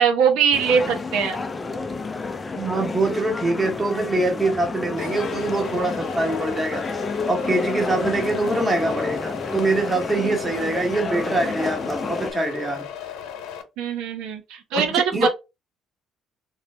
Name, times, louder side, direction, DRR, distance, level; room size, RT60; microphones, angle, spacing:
voice 1, 0.0-1.4 13.8-15.3, right 7 dB, 85° right, 0.8 m, -21 dB
sound 1, 0.5-12.3, left 4 dB, 25° left, 0.4 m, -30 dB
voice 2, 2.5-6.8 7.3-12.9 14.7-15.3, right 2 dB, 20° right, 1.2 m, -24 dB
sound 2, 5.0-13.6, left 9 dB, 80° left, 0.8 m, -36 dB
3.2 x 2.4 x 3.3 m
cardioid pair, 105°, 0 cm